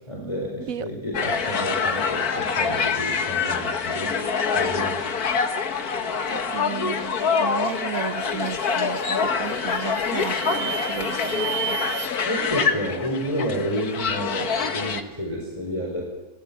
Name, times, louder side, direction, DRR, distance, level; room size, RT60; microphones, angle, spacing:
voice 1, 0.1-4.2 4.5-5.0 12.2-16.0, equal, 20° left, -1 dB, 4.6 m, -30 dB
sound 1, 1.1-15.0, left 5 dB, 85° left, 2.0 m, -25 dB
voice 2, 6.3-11.8, right 8 dB, 65° right, 13 dB, 1.5 m, -34 dB
sound 2, 7.6-7.9 8.4-8.9 9.4-12.1, right 11 dB, 85° right, 2.4 m, -34 dB
28.5 x 19.0 x 8.6 m, 1.1 s
omnidirectional pair, 1.5 m